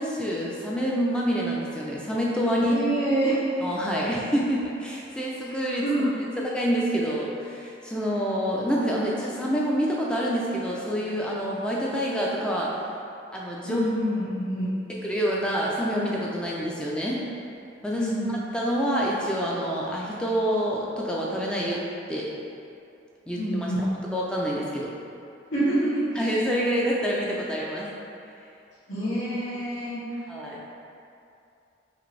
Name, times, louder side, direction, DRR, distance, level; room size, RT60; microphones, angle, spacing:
voice 1, 0.0-2.7 3.6-6.1 6.4-12.7 13.3-13.8 14.9-17.3 17.8-22.3 23.3-23.7 24.1-24.9 26.1-27.9 30.3-30.6, equal, 5° left, -4 dB, 0.4 m, -27 dB
voice 2, 2.7-3.6 5.8-6.1 13.6-14.7 17.9-18.3 23.3-23.8 25.5-26.3 28.9-30.0, right 1 dB, 80° left, -17 dB, 1.5 m, -26 dB
4.9 x 2.6 x 3.2 m, 2.7 s
head